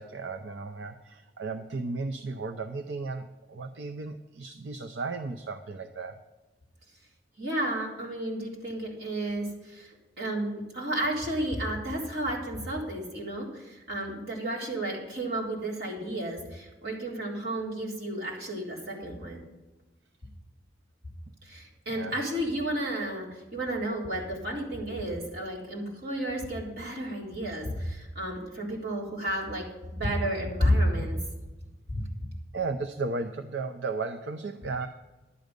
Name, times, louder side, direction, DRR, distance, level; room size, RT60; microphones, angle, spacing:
voice 1, 0.0-6.2 21.9-22.2 32.5-34.9, right 3 dB, 80° right, 7 dB, 0.6 m, -35 dB
voice 2, 7.4-19.4 21.4-29.7 29.9-31.2 31.9-32.0, right 1 dB, 60° right, -3 dB, 3.6 m, -32 dB
11.5 x 9.4 x 5.2 m, 1.1 s
head